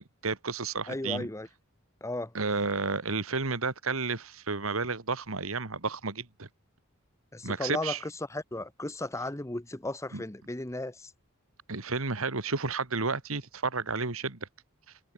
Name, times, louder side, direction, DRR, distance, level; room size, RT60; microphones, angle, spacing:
voice 1, 0.0-1.3 2.3-6.5 7.4-8.0 10.1-10.2 11.7-14.5, right 4 dB, 75° right, 2.0 m, -31 dB
voice 2, 0.9-1.5 2.0-2.3 7.3-11.1, left 2 dB, 15° left, 1.0 m, -35 dB
head